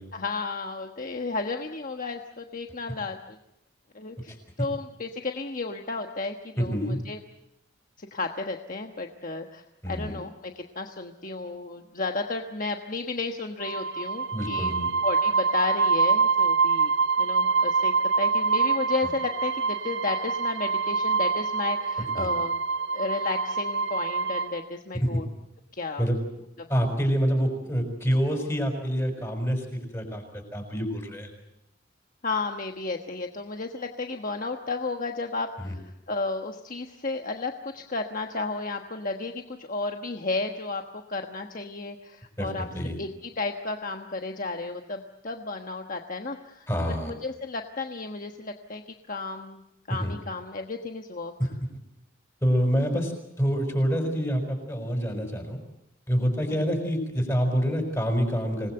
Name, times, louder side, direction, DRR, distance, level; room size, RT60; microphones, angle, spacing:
voice 1, 0.1-3.4 3.9-7.2 8.0-14.7 15.0-16.9 17.2-22.6 22.9-25.2 25.7-26.1 26.6-26.7 32.2-35.8 36.1-42.6 43.0-46.7 47.0-48.8 49.1-49.6 49.9-51.3 56.5-56.6, left 3 dB, 40° left, 3 dB, 1.3 m, -33 dB
voice 2, 6.6-7.0 9.8-10.2 14.3-14.9 22.2-22.3 24.9-25.2 26.0-26.2 26.7-29.7 29.9-31.3 35.6-35.7 42.4-43.0 46.7-47.1 49.9-50.1 51.4-51.5 52.4-53.1 53.4-55.6 56.1-58.7, equal, 15° left, 4 dB, 5.7 m, -26 dB
sound 1, 13.6-24.5, right 5 dB, 85° right, 4.1 m, -25 dB
26.5 x 20.0 x 7.9 m, 0.87 s
head